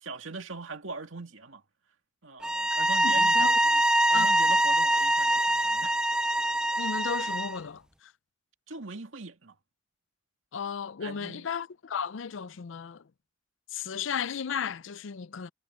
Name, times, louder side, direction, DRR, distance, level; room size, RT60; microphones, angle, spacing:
voice 1, 0.0-1.6 2.2-3.8 4.1-6.0 8.7-9.6 11.0-11.5, right 3 dB, 90° right, 2.3 m, -41 dB
sound 1, 2.4-7.6, right 1 dB, 5° right, 0.3 m, -24 dB
voice 2, 3.0-3.6 4.1-4.3 6.8-8.1 10.5-13.0 13.7-15.5, left 7 dB, 80° left, 0.5 m, -34 dB
head